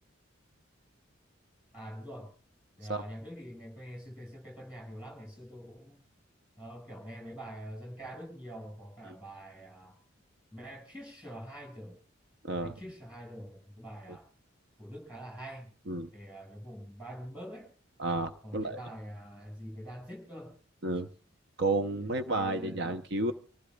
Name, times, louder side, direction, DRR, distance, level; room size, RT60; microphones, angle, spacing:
voice 1, 1.7-2.3 2.8-6.0 6.6-10.0 10.5-12.0 12.6-14.3 14.8-15.7 16.1-17.7 18.4-20.5 22.0-23.0, equal, 5° right, 2 dB, 5.5 m, -45 dB
voice 2, 18.0-18.8 20.8-21.1 21.6-23.3, right 2 dB, 55° right, 8 dB, 0.7 m, -31 dB
26.5 x 15.5 x 2.3 m, 0.41 s
head